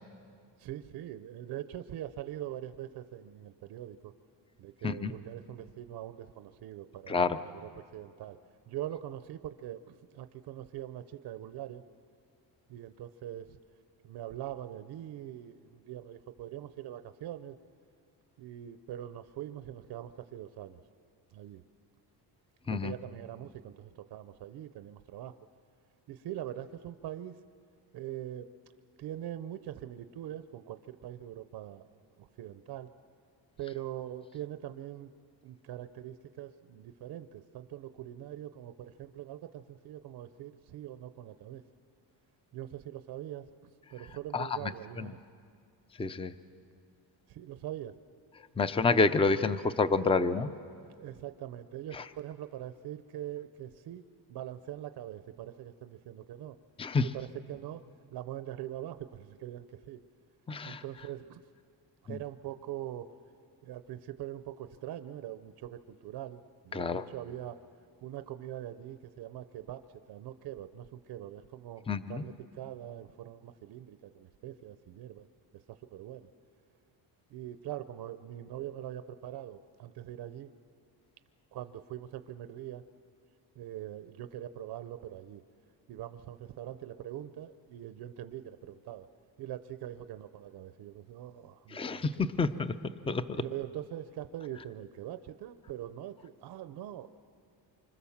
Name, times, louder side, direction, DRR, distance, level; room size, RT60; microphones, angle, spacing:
voice 1, 0.6-4.1 4.6-8.4 8.7-11.8 12.7-13.6 14.0-17.6 18.4-20.8 21.3-21.6 22.7-25.3 26.1-27.3 27.9-28.5 29.0-31.9 32.2-32.9 33.6-35.1 35.4-41.6 42.5-45.1 47.3-48.0 51.0-54.0 54.3-56.6 57.0-57.8 58.1-60.0 60.6-61.4 62.0-63.1 63.6-67.6 68.0-69.8 70.1-75.3 75.9-76.3 77.3-80.5 81.5-82.8 83.6-85.4 85.9-89.1 89.4-92.1 93.3-97.1, right 12 dB, 70° right, 11 dB, 0.8 m, -43 dB
voice 2, 7.1-7.4 22.7-22.9 44.3-45.1 46.0-46.3 48.6-50.5 51.9-52.0 56.8-57.1 60.5-60.8 62.1-62.2 66.7-67.0 71.9-72.2 91.7-92.7 93.1-93.2, left 4 dB, 15° left, 12 dB, 0.6 m, -29 dB
26.0 x 25.5 x 7.2 m, 2.3 s
cardioid pair, 135°, 41 cm